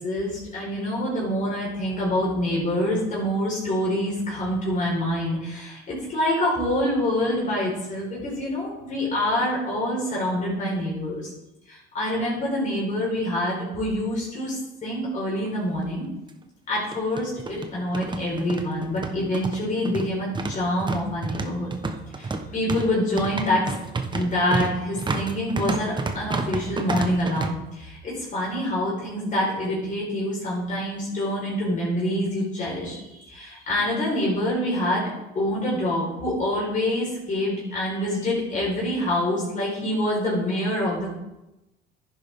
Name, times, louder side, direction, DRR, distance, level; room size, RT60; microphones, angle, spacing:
voice 1, 0.0-11.3 11.7-16.1 16.7-21.7 22.1-23.7 24.1-41.1, left 1 dB, 40° left, -5 dB, 4.5 m, -26 dB
sound 1, 15.4-15.5 15.8-15.9 16.7-27.5, right 3 dB, 20° right, 1.1 m, -30 dB
10.5 x 10.5 x 3.6 m, 0.97 s
supercardioid pair, 100°, 21 cm